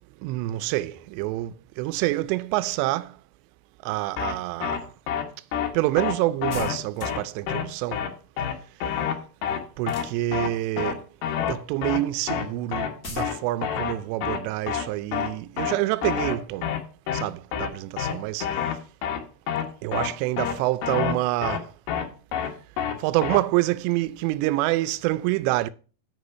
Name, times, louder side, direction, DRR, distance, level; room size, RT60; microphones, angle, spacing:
voice 1, 0.2-3.1 3.9-4.8 5.7-8.0 9.8-11.0 11.5-16.7 17.1-18.5 19.8-21.7 23.0-25.7, right 17 dB, 85° right, 2.8 m, -27 dB
sound 1, 4.2-4.3 4.6-4.8 5.1-5.2 5.5-5.7 6.0-6.1 6.4-6.7 7.0-7.2 7.5-7.6 7.9-8.1 8.4-8.5 8.8-9.1 9.4-9.6 9.9-10.0 10.3-10.5 10.8-10.9 11.2-11.5 11.8-12.0 12.3-12.4 12.7-12.9 13.2-13.3 13.6-13.9 14.2-14.4 14.7-14.8 15.1-15.3 15.6-15.7 16.0-16.3 16.6-16.8 17.1-17.2 17.5-17.7 18.0-18.1 18.4-18.7 19.0-19.2 19.5-19.6 19.9-20.1 20.4-20.5 20.8-21.1 21.4-21.6 21.9-22.0 22.3-22.5 22.8-22.9 23.2-23.4, left 8 dB, 75° left, 3.3 m, -27 dB
sound 2, 6.5-7.4 9.8-10.6 13.0-13.3, left 2 dB, 50° left, 0.9 m, -41 dB
8.0 x 5.3 x 6.7 m
omnidirectional pair, 5.0 m